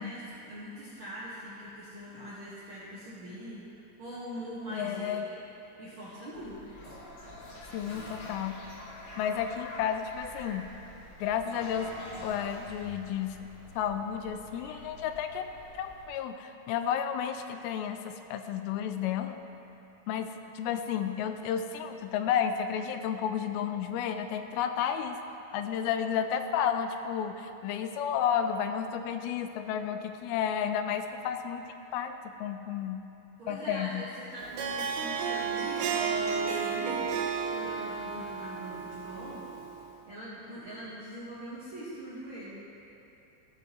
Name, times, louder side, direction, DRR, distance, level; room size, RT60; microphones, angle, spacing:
voice 1, 0.0-5.4 5.8-6.8 33.4-37.1 37.5-39.4 40.0-42.6, right 1 dB, 60° right, -10 dB, 1.4 m, -42 dB
voice 2, 4.7-5.3 7.7-8.6 9.2-10.7 11.2-11.9 12.2-13.4 13.8-15.5 15.8-19.4 20.1-25.2 25.5-31.7 31.9-33.1 33.5-34.0, left 8 dB, 85° left, 7 dB, 2.4 m, -32 dB
sound 1, 6.3-16.1, right 1 dB, 30° left, 2.1 m, -53 dB
Toilet flush, 6.7-13.6, left 1 dB, 70° left, 3.2 m, -45 dB
Harp, 34.4-39.8, right 6 dB, 75° right, 2.0 m, -32 dB
15.5 x 7.1 x 3.0 m, 2.9 s
omnidirectional pair, 4.4 m